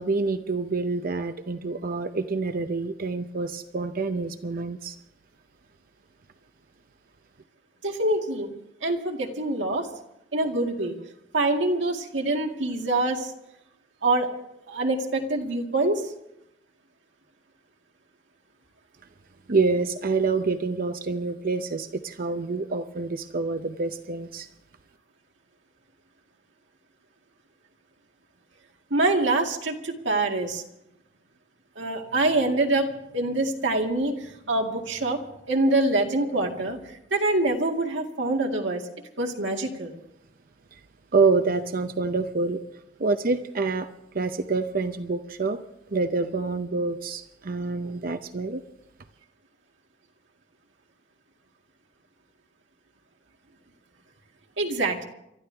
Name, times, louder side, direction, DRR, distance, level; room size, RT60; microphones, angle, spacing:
voice 1, 0.0-5.0 19.5-24.5 40.7-40.8 41.1-42.6 43.0-43.9 44.1-45.6 45.9-48.6, right 3 dB, 50° right, 9 dB, 0.7 m, -27 dB
voice 2, 7.8-8.5 8.8-9.9 10.3-10.9 11.3-13.3 14.0-14.3 14.7-16.1 28.9-30.6 31.8-35.2 35.5-38.8 39.2-40.0 54.6-55.1, right 2 dB, 85° right, 1 dB, 2.1 m, -25 dB
29.0 x 13.5 x 3.4 m, 0.84 s
head